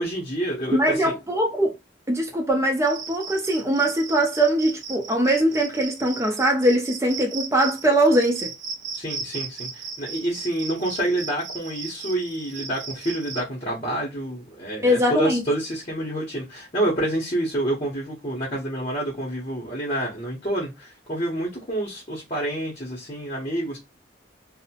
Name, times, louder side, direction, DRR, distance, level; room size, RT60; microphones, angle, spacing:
voice 1, 0.0-1.1 8.9-23.8, right 1 dB, 35° left, 0.8 m, -28 dB
voice 2, 0.7-1.7 2.1-8.5 14.8-15.4, right 1 dB, 15° right, 0.6 m, -21 dB
Cricket, 2.8-13.4, right 5 dB, 80° right, 0.6 m, -36 dB
2.6 x 2.1 x 2.8 m
head